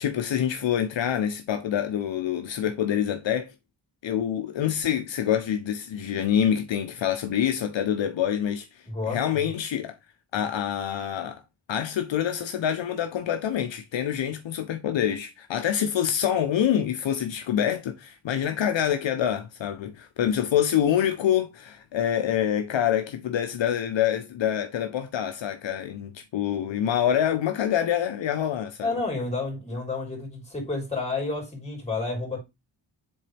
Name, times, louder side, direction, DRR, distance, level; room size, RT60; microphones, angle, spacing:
voice 1, 0.0-3.5 4.0-8.7 9.1-10.0 10.3-11.4 11.7-29.0, left 9 dB, 75° left, 0.8 m, -26 dB
voice 2, 8.9-9.2 28.8-32.4, left 3 dB, 15° left, 3.9 m, -30 dB
7.3 x 3.9 x 3.3 m
cardioid pair, 70°, 46 cm